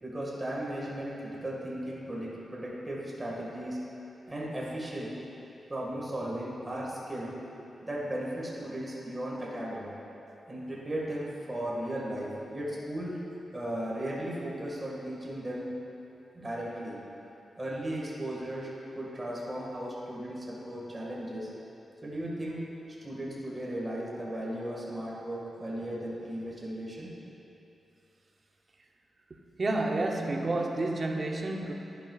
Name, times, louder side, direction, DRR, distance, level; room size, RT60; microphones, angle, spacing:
voice 1, 0.0-3.8 4.3-5.2 5.7-7.4 7.8-9.9 10.5-13.2 13.5-15.7 16.3-17.0 17.6-21.5 22.0-22.6 23.0-27.1, right 1 dB, 20° right, -5 dB, 1.8 m, -36 dB
voice 2, 29.6-31.7, right 2 dB, 40° right, 2 dB, 0.8 m, -30 dB
11.0 x 10.0 x 2.4 m, 2.9 s
wide cardioid pair, 115°, 0 cm